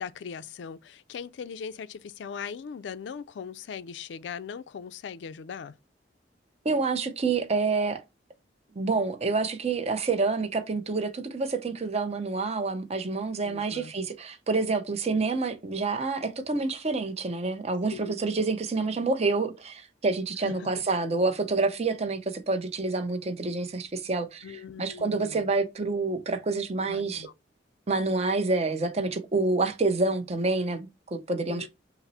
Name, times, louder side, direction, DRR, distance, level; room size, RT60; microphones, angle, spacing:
voice 1, 0.0-5.7 13.4-13.9 17.9-18.1 20.4-20.7 24.4-25.5 26.9-27.3 31.5-31.7, left 6 dB, 80° left, 0.4 m, -39 dB
voice 2, 6.6-8.0 8.8-27.3 27.9-31.7, right 3 dB, 35° right, 0.6 m, -28 dB
5.7 x 2.0 x 4.0 m
head